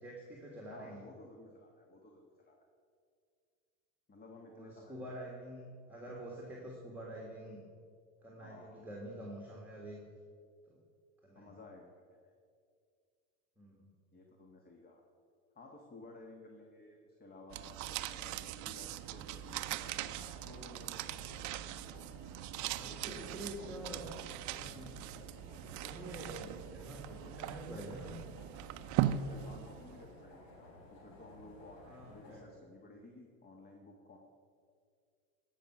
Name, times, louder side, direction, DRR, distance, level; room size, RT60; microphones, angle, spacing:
voice 1, 0.0-1.0 4.4-7.6 8.2-10.0 10.7-10.8 11.2-11.5 13.6-13.9 22.7-24.1 24.6-25.0 25.6-28.1 31.8-32.5, right 1 dB, 5° right, -3 dB, 1.8 m, -47 dB
voice 2, 0.7-2.6 4.1-5.2 8.4-8.9 11.3-12.3 14.1-15.0 15.5-21.0 22.8-24.1 29.2-34.2, left 2 dB, 25° left, 1 dB, 1.4 m, -55 dB
sound 1, 17.5-30.1, right 12 dB, 50° right, 0.5 m, -40 dB
sound 2, 19.9-32.4, left 2 dB, 60° left, 3.1 m, -56 dB
14.5 x 5.8 x 6.1 m, 2.2 s
supercardioid pair, 95°, 39 cm